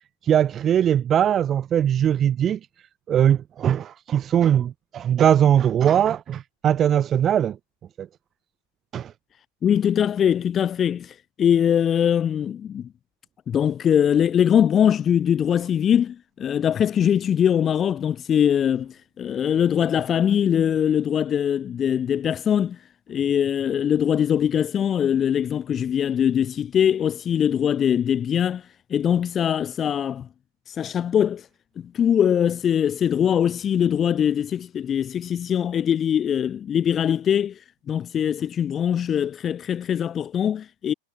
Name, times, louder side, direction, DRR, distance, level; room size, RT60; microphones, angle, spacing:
voice 1, 0.2-2.6 3.1-7.6 8.0-8.1 8.9-9.1, right 9 dB, 25° right, 1.0 m, -20 dB
voice 2, 9.6-12.9 13.5-22.8 23.1-30.3 30.7-31.5 31.8-37.6 37.9-40.9, left 9 dB, 25° left, 0.9 m, -22 dB
figure-of-eight pair, 90°, 0 cm